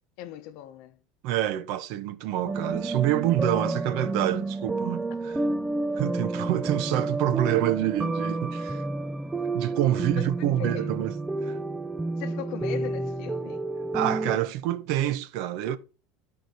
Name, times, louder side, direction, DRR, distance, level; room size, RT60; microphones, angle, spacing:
voice 1, 0.2-1.0 5.1-5.2 8.7-8.8 10.0-10.9 12.2-13.7, left 11 dB, 50° left, 0.9 m, -39 dB
voice 2, 1.2-5.4 6.0-8.8 9.5-11.1 11.4-11.6 13.9-15.8, right 13 dB, 50° right, 0.8 m, -27 dB
sound 1, 2.5-14.4, right 2 dB, 5° right, 0.4 m, -30 dB
12.5 x 4.8 x 4.0 m
cardioid pair, 175°, 0 cm